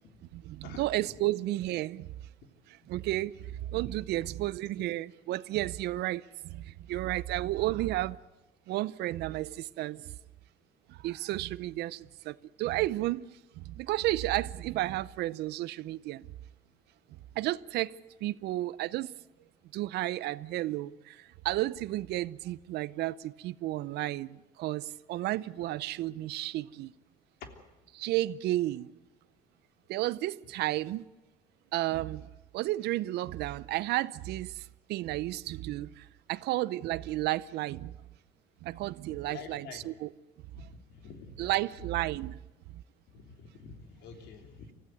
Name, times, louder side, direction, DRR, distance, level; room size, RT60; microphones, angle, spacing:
voice 1, 0.3-2.1 2.7-8.2 8.7-10.0 10.9-13.3 13.6-16.3 17.4-18.0 18.2-19.1 19.7-26.9 27.9-28.9 29.9-31.0 31.7-32.3 32.5-38.0 38.6-40.1 41.4-42.4 42.7-42.8, right 16 dB, 80° right, 0.7 m, -32 dB
voice 2, 39.2-39.8 40.6-40.7 40.9-41.5 43.1-44.7, left 5 dB, 85° left, 3.4 m, -47 dB
24.5 x 15.0 x 9.4 m
cardioid pair, 110°, 17 cm